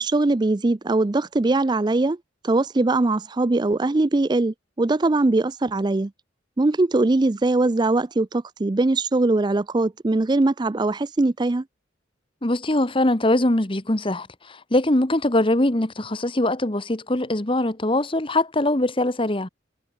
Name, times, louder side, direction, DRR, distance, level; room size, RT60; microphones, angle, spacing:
voice 1, 0.0-2.2 2.4-6.1 6.6-11.6, right 2 dB, 25° right, 0.4 m, -21 dB
voice 2, 12.4-19.5, left 1 dB, 25° left, 1.4 m, -22 dB
head